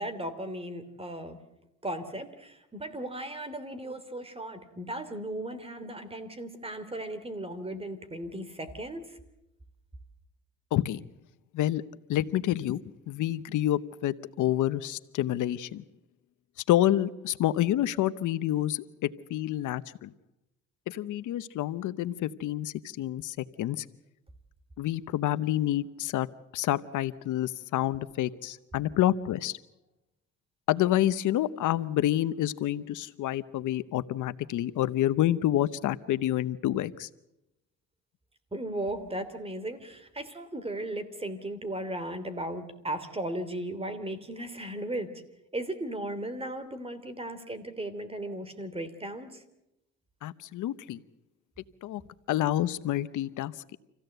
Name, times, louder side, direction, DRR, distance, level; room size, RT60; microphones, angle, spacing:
voice 1, 0.0-1.4 1.8-9.2 38.5-45.2 45.5-49.4, right 1 dB, 20° right, 10 dB, 3.1 m, -36 dB
voice 2, 12.1-12.8 13.1-15.8 16.7-20.1 20.9-23.8 24.8-26.3 26.5-29.6 30.7-37.1 50.2-51.0 51.8-52.0 52.3-53.6, left 13 dB, 80° left, 14 dB, 0.9 m, -28 dB
27.5 x 16.0 x 7.9 m, 0.89 s
cardioid pair, 90°, 30 cm